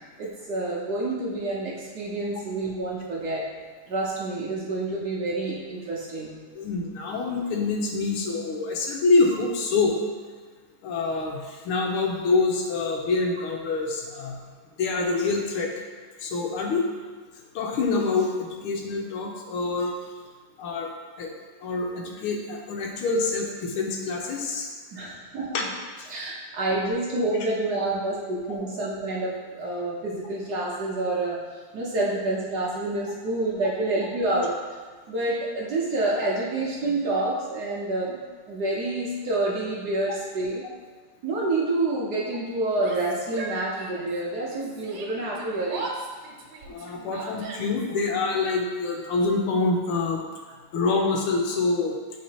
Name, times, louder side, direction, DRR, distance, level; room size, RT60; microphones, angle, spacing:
voice 1, 0.0-3.5 3.9-6.3 24.9-25.7 26.1-34.6 35.1-38.2 38.5-40.6 41.2-45.9, right 2 dB, 60° right, -5 dB, 1.2 m, -28 dB
voice 2, 6.5-9.9 10.8-14.4 14.8-15.7 16.2-16.9 17.5-19.9 20.6-20.9 21.2-21.3 21.6-24.7 25.5-25.6 26.0-26.1 46.7-50.2 50.7-52.0, left 3 dB, 80° left, 1 dB, 1.7 m, -26 dB
Yell, 42.7-44.2 44.5-47.9, right 3 dB, 75° right, 1.7 m, -38 dB
9.4 x 3.7 x 2.9 m, 1.5 s
omnidirectional pair, 2.4 m